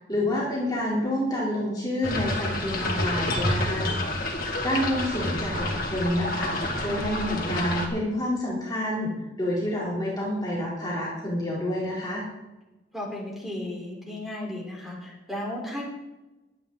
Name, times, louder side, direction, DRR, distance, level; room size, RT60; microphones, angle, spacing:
voice 1, 0.1-4.2 4.6-6.5 6.8-12.2, left 1 dB, 20° left, -6 dB, 3.7 m, -28 dB
sound 1, 2.0-7.9, left 1 dB, 50° left, 2.3 m, -28 dB
voice 2, 12.9-15.8, left 1 dB, ahead, -3 dB, 4.3 m, -34 dB
22.5 x 9.3 x 4.0 m, 1.0 s
head